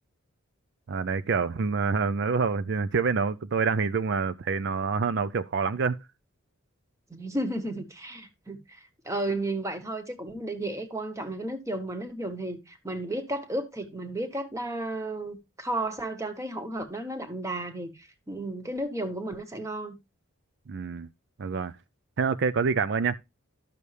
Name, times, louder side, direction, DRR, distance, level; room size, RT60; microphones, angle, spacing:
voice 1, 0.9-6.0 20.7-21.1 21.4-21.7 22.2-23.2, right 5 dB, 55° right, 0.4 m, -27 dB
voice 2, 7.1-20.0, right 1 dB, 15° right, 1.2 m, -33 dB
12.5 x 6.8 x 3.2 m
head